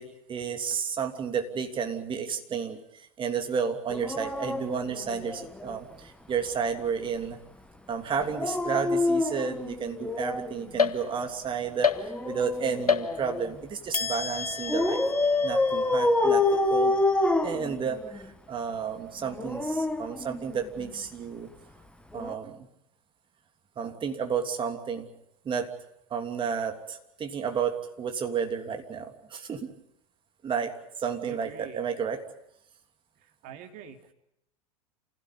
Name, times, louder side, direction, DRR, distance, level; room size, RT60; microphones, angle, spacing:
voice 1, 0.0-7.4 7.9-11.9 12.2-15.0 15.4-17.0 17.4-21.5 22.1-22.7 23.8-25.1 25.4-25.7 26.1-29.7 30.4-32.2, right 6 dB, 25° right, 5 dB, 3.0 m, -32 dB
Dog, 3.9-5.8 8.2-10.6 11.9-13.5 14.7-18.2 19.2-20.9 22.1-22.3, left 2 dB, 5° left, 1.6 m, -27 dB
sound 1, 10.8-11.4 11.8-12.5 12.9-13.5 13.9-17.4, left 6 dB, 85° left, 1.2 m, -31 dB
voice 2, 31.2-31.8 33.2-34.1, right 8 dB, 45° right, 5 dB, 3.0 m, -45 dB
28.0 x 16.5 x 8.6 m, 0.79 s
figure-of-eight pair, 85°, 19 cm